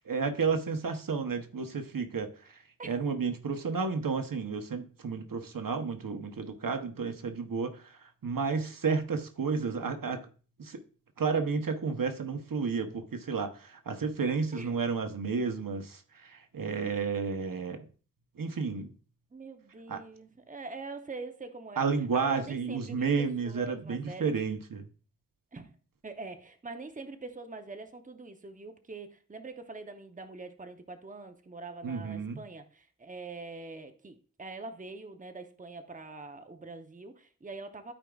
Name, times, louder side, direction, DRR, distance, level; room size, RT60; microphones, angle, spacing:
voice 1, 0.1-10.3 10.6-10.8 11.2-17.8 18.4-18.9 19.9-20.0 21.8-24.9 31.8-32.4, right 5 dB, 70° right, 0.9 m, -32 dB
voice 2, 19.3-21.8 22.1-24.3 25.5-25.7 26.0-37.9, right 3 dB, 25° right, 0.8 m, -44 dB
12.5 x 4.9 x 2.4 m
wide cardioid pair, 60°, 34 cm